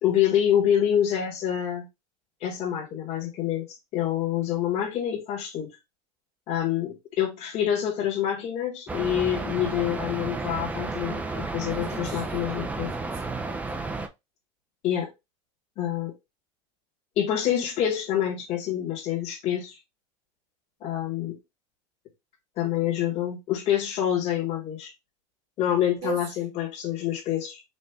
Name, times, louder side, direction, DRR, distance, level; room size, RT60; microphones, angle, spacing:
voice 1, 0.0-1.9 2.4-5.7 6.5-12.9 14.8-15.1 15.8-16.1 17.2-19.8 20.8-21.4 22.6-24.9 25.6-27.6, left 10 dB, 45° left, 1.4 m, -27 dB
sound 1, 8.9-14.1, right 3 dB, 10° right, 0.4 m, -32 dB
voice 2, 11.8-12.3 12.8-14.0 26.0-26.3, right 9 dB, 60° right, 1.9 m, -40 dB
4.3 x 2.5 x 3.4 m
supercardioid pair, 130°, 15 cm